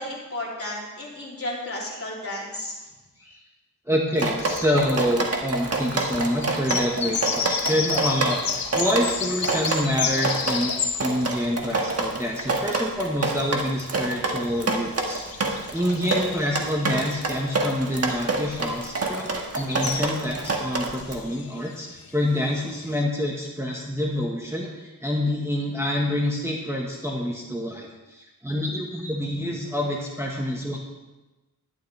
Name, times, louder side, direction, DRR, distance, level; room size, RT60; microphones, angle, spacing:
voice 1, 0.0-2.7 3.2-3.4, left 1 dB, 40° left, -5 dB, 3.2 m, -33 dB
voice 2, 3.9-10.7 11.0-30.8, left 1 dB, 10° right, -3 dB, 1.3 m, -27 dB
Drip, 4.2-21.2, right 3 dB, 45° right, 1.4 m, -27 dB
sound 1, 6.2-12.8 13.2-23.0, left 6 dB, 80° left, 0.9 m, -32 dB
11.5 x 11.0 x 3.4 m, 1.1 s
wide cardioid pair, 85°, 35 cm